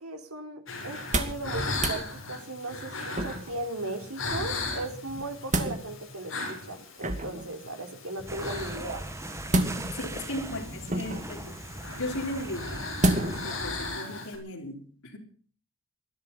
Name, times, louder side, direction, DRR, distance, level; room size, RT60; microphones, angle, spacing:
voice 1, 0.0-9.0, right 2 dB, 85° right, 5 dB, 3.8 m, -37 dB
sound 1, 0.7-14.4, left 2 dB, 65° left, 6.7 m, -38 dB
sound 2, 0.9-1.5 1.7-2.0 3.1-3.6 5.1-5.8 7.0-7.5 9.5-10.1 10.9-11.4 13.0-13.5 13.9-14.0, right 1 dB, 35° right, 2.3 m, -28 dB
sound 3, 8.3-13.6, right 1 dB, 15° right, 1.5 m, -40 dB
voice 2, 9.9-11.6 11.9-15.2, left 1 dB, 90° left, -1 dB, 4.1 m, -37 dB
19.5 x 13.0 x 5.5 m, 0.42 s
head